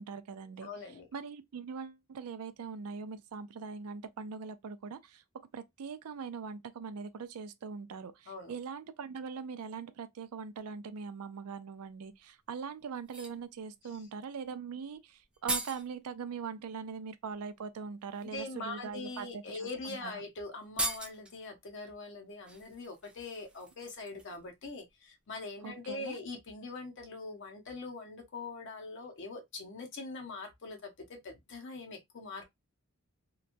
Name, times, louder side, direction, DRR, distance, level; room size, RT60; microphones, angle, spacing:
voice 1, 0.0-5.2 5.5-20.2 25.6-26.2, right 5 dB, 80° right, 0.4 m, -42 dB
voice 2, 0.6-1.1 8.3-8.5 18.2-30.9 31.2-32.4, left 3 dB, 55° left, 0.7 m, -42 dB
sound 1, 12.1-12.2 13.0-13.4 14.9-15.0 15.2-15.9 17.3-17.4 18.0-18.2 19.1-19.2 19.6-19.7 20.0-20.1 20.6-21.4 22.5-24.5 24.8-24.9, right 2 dB, 5° right, 0.4 m, -39 dB
2.9 x 2.2 x 2.5 m
head